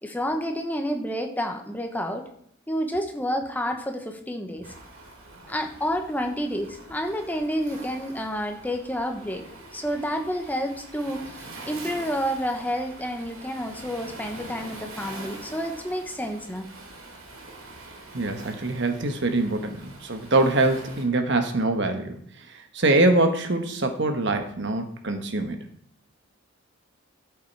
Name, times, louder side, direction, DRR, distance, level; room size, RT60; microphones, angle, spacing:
voice 1, 0.0-2.2 2.7-4.7 5.5-9.4 9.7-16.7, equal, 10° left, 4 dB, 1.0 m, -29 dB
Waves surf, 4.6-21.0, right 2 dB, 85° right, 2.7 m, -44 dB
voice 2, 18.1-22.2 22.7-25.7, right 2 dB, 55° right, 6 dB, 1.2 m, -24 dB
13.0 x 7.3 x 4.6 m, 0.68 s
head